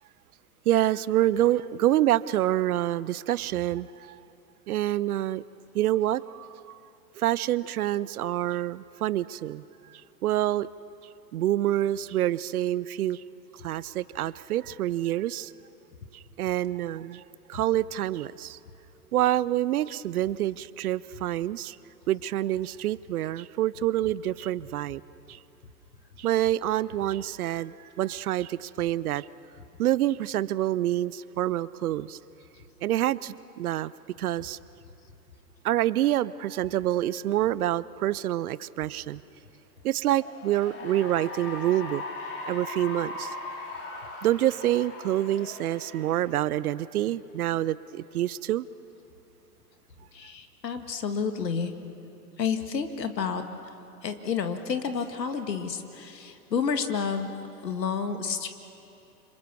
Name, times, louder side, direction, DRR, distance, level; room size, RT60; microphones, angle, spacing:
voice 1, 0.7-4.2 4.7-5.4 5.7-6.8 7.2-9.6 10.2-10.7 11.3-13.2 13.6-15.5 16.4-17.2 17.5-18.6 19.1-21.8 22.1-25.0 25.3-25.4 26.2-29.2 29.8-32.2 32.8-33.9 34.2-34.6 35.6-39.2 39.8-42.0 42.5-43.3 44.2-48.7, right 13 dB, 60° right, 20 dB, 0.7 m, -27 dB
Cheering / Applause, 40.0-46.7, left 2 dB, 25° left, 5.6 m, -39 dB
voice 2, 50.1-51.7 52.4-53.4 54.0-57.3 57.6-58.5, left 6 dB, 75° left, 7 dB, 2.0 m, -30 dB
29.0 x 26.0 x 6.9 m, 2.8 s
figure-of-eight pair, 105°, 50 cm